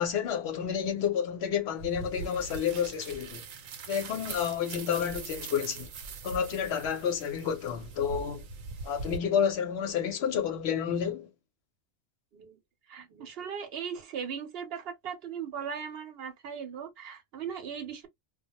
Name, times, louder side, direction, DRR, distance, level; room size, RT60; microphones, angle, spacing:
voice 1, 0.0-3.4 3.9-5.9 6.2-8.5 8.8-11.3, left 8 dB, 60° left, 0.8 m, -30 dB
sound 1, 1.8-9.2, right 4 dB, 80° right, 1.0 m, -42 dB
voice 2, 12.9-18.1, right 7 dB, 55° right, 0.8 m, -38 dB
2.2 x 2.0 x 2.7 m
omnidirectional pair, 1.4 m